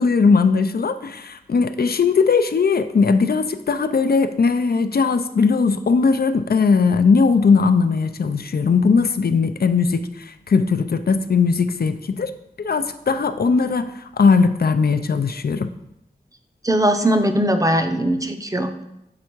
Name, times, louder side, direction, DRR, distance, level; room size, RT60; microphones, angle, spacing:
voice 1, 0.0-12.3 12.6-15.7, left 5 dB, 70° left, 10 dB, 0.4 m, -19 dB
voice 2, 16.6-18.9, right 1 dB, 20° right, 7 dB, 0.6 m, -20 dB
7.5 x 3.4 x 4.5 m, 0.85 s
wide cardioid pair, 65°, 16 cm